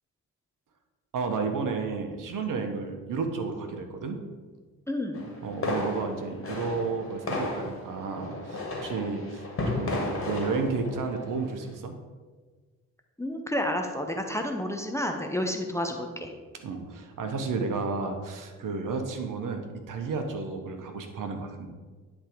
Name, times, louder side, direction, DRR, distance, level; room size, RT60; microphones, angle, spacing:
voice 1, 1.1-4.2 5.4-11.9 16.6-19.6 19.9-21.7, right 4 dB, 45° right, 5 dB, 1.1 m, -32 dB
voice 2, 4.9-5.3 13.2-16.3, left 1 dB, 5° left, 4 dB, 0.9 m, -30 dB
sound 1, 5.1-11.5, left 2 dB, 30° left, 2.3 m, -33 dB
10.0 x 3.6 x 4.9 m, 1.4 s
figure-of-eight pair, 45°, 43 cm